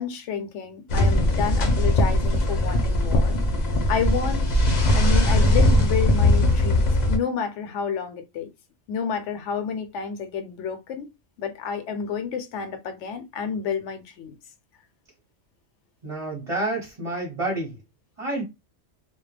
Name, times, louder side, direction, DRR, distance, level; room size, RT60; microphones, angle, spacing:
voice 1, 0.0-3.4 3.9-4.6 4.9-8.5 8.9-11.1 11.4-14.3, left 6 dB, 75° left, 0.9 m, -30 dB
sound 1, 0.9-7.2, left 1 dB, 50° left, 0.6 m, -20 dB
voice 2, 16.0-17.8 18.2-18.4, right 2 dB, 30° right, 0.8 m, -29 dB
2.2 x 2.1 x 3.2 m
omnidirectional pair, 1.3 m